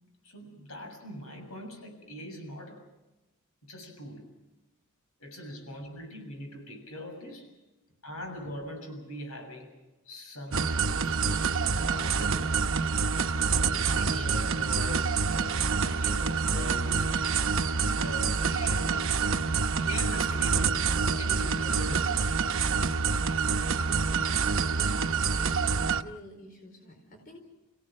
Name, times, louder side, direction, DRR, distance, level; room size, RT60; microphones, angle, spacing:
voice 1, 0.2-2.8 3.6-4.3 5.2-7.5 8.0-9.7 10.1-12.6 13.5-17.5 17.8-19.2 19.8-22.4, left 1 dB, 85° left, 4 dB, 7.2 m, -42 dB
sound 1, 10.5-26.0, right 5 dB, 65° right, 0.9 m, -27 dB
voice 2, 23.7-25.7 25.9-27.4, equal, 45° left, 3 dB, 4.4 m, -49 dB
30.0 x 17.0 x 7.6 m, 1.0 s
head